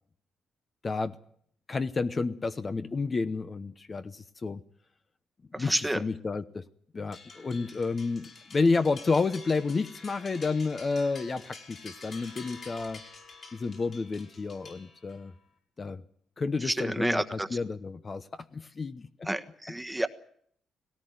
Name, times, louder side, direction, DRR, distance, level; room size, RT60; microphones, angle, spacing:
voice 1, 0.8-1.2 1.7-4.6 5.5-6.6 6.9-13.0 13.5-15.3 15.8-16.0 16.4-19.3, left 4 dB, 35° left, 11 dB, 0.9 m, -30 dB
voice 2, 5.5-6.0 16.6-17.5 19.3-20.1, right 1 dB, 5° right, 9 dB, 1.3 m, -29 dB
sound 1, 7.1-15.3, left 4 dB, 50° left, 5.0 m, -48 dB
18.5 x 17.5 x 9.5 m, 0.65 s
cardioid pair, 90°, 0 cm